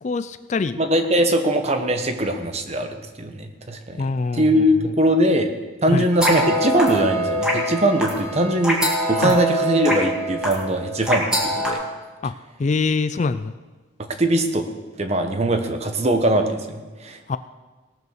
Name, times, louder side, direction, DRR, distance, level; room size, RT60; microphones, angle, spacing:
voice 1, 0.0-0.8 4.0-4.6 5.9-6.1 9.2-9.3 12.2-12.3 12.6-13.5 17.3-17.4, left 4 dB, 35° left, 12 dB, 0.3 m, -24 dB
voice 2, 0.8-4.1 4.3-5.5 5.8-8.8 9.1-11.8 14.0-14.7 15.0-17.2, right 1 dB, 30° right, 6 dB, 1.0 m, -21 dB
sound 1, 6.1-11.7, equal, 5° right, 2.0 m, -24 dB
18.0 x 6.8 x 6.5 m, 1.3 s
head